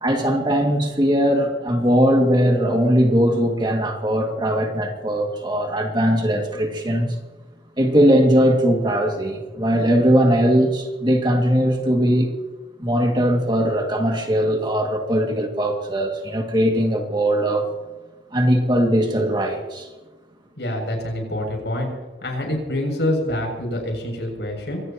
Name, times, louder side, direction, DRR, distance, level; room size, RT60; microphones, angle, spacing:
voice 1, 0.0-7.2 7.8-12.3 12.8-17.7 18.3-19.9, equal, 25° right, 2 dB, 2.3 m, -19 dB
voice 2, 20.6-21.9 22.2-24.8, left 1 dB, 75° left, 2 dB, 7.3 m, -26 dB
24.5 x 18.5 x 3.0 m, 1.2 s
head